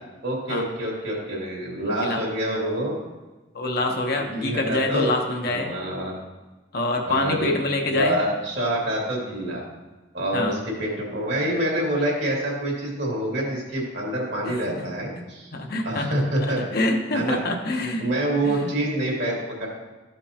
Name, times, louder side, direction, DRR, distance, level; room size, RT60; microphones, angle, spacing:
voice 1, 0.2-3.0 4.2-5.1 5.5-6.1 7.0-7.5 7.9-9.6 10.1-15.5 15.8-16.6 17.1-17.4 18.0-19.7, right 1 dB, 60° right, -3 dB, 2.4 m, -26 dB
voice 2, 1.9-2.2 3.5-5.7 6.7-8.2 10.3-10.6 15.5-16.1 16.7-18.1 18.4-18.7, left 2 dB, 50° left, 2 dB, 1.0 m, -25 dB
13.5 x 5.2 x 2.9 m, 1.2 s
head